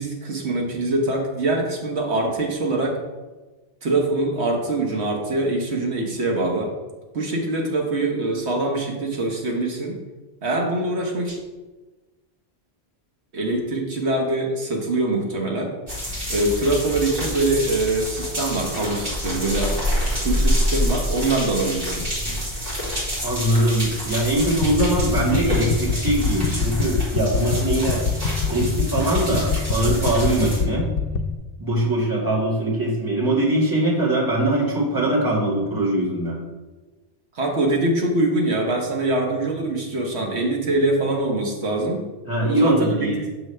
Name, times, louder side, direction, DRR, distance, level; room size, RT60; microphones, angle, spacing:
voice 1, 0.0-3.0 3.8-6.7 7.1-10.0 10.4-11.4 13.3-15.7 16.3-19.8 20.2-22.1 37.3-42.1 42.5-43.3, right 2 dB, 85° right, 1 dB, 1.3 m, -23 dB
sound 1, 15.9-30.6, equal, 60° right, 2.5 m, -27 dB
voice 2, 23.2-28.0 28.5-30.9 31.6-36.4 42.3-43.2, right 1 dB, 20° right, -6 dB, 1.9 m, -22 dB
sound 2, 24.6-31.3, left 5 dB, 65° left, 0.8 m, -25 dB
7.0 x 6.4 x 3.2 m, 1.2 s
omnidirectional pair, 1.1 m